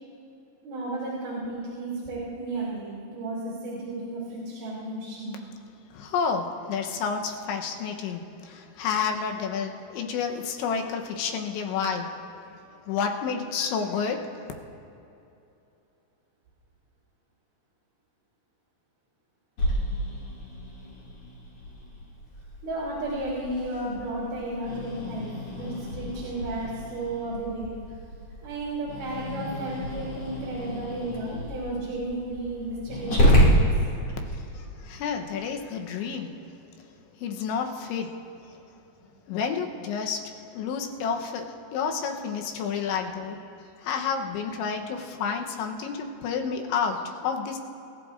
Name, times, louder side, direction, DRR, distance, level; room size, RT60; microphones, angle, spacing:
voice 1, 0.6-5.4 22.6-25.3 25.5-27.7 28.4-33.6, right 2 dB, 50° right, -8 dB, 4.5 m, -33 dB
voice 2, 5.9-12.3 12.9-14.5 34.3-36.3 37.2-38.1 38.4-38.5 39.3-41.5 41.7-43.4 43.8-47.6, left 6 dB, 85° left, 3 dB, 3.3 m, -30 dB
Growling, 19.6-34.4, equal, 40° left, 2.9 m, -28 dB
29.5 x 14.5 x 2.6 m, 2.7 s
omnidirectional pair, 5.3 m